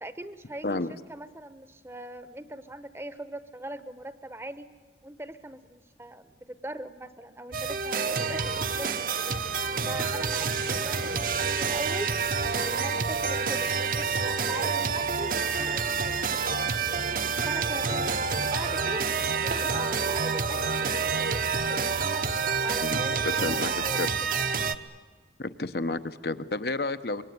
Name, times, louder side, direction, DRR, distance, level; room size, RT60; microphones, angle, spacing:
voice 1, 0.0-0.8 1.1-4.7 5.0-9.4 9.9-12.2 12.5-16.0 16.8-17.1 17.5-22.3 22.6-24.6, right 1 dB, 15° right, 12 dB, 0.9 m, -41 dB
sound 1, 7.5-24.7, right 5 dB, 50° right, 1.0 m, -28 dB
sound 2, 7.9-23.8, right 2 dB, 75° right, 2.0 m, -40 dB
voice 2, 23.4-23.7 24.0-24.1 25.4-27.2, left 2 dB, 65° left, 11 dB, 1.0 m, -30 dB
25.0 x 22.0 x 9.5 m, 1.4 s
head